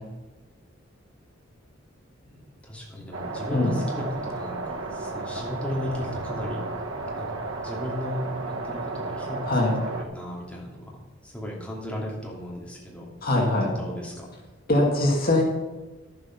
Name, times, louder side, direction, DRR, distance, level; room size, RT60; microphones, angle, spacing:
voice 1, 2.3-6.8 7.2-11.0 11.2-14.3, equal, 5° left, -4 dB, 2.8 m, -35 dB
sound 1, 3.1-10.0, right 3 dB, 85° right, 1.5 m, -33 dB
voice 2, 9.5-9.8 13.2-13.7 14.7-15.4, left 2 dB, 50° left, -1 dB, 2.1 m, -22 dB
12.0 x 7.8 x 5.9 m, 1.2 s
head